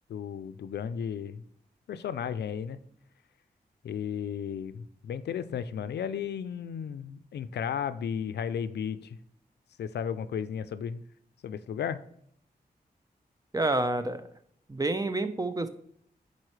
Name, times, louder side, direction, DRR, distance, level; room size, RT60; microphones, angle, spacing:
voice 1, 0.1-1.4 1.9-2.8 3.8-9.2 9.8-11.0 11.4-12.0, left 8 dB, 90° left, 13 dB, 0.4 m, -34 dB
voice 2, 13.5-14.2 14.7-15.7, right 2 dB, 20° right, 10 dB, 0.8 m, -28 dB
9.7 x 4.2 x 3.2 m, 0.68 s
cardioid pair, 50°, 17 cm